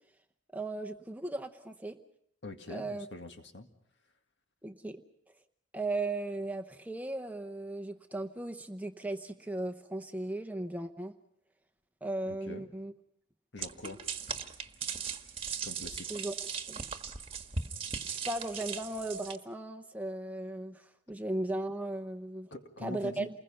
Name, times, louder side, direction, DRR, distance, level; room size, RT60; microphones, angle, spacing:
voice 1, 0.5-2.0 2.7-3.1 4.6-5.0 5.7-11.1 12.0-12.9 16.1-16.3 16.7-16.8 18.1-22.5 22.8-23.3, right 2 dB, 10° right, 6 dB, 0.8 m, -37 dB
voice 2, 2.4-3.7 12.3-12.7 13.5-14.0 15.6-16.1 22.5-23.3, left 2 dB, 60° left, 5 dB, 2.0 m, -44 dB
sound 1, 13.6-19.4, right 6 dB, 30° right, 1.4 m, -38 dB
29.0 x 21.0 x 5.6 m, 0.72 s
head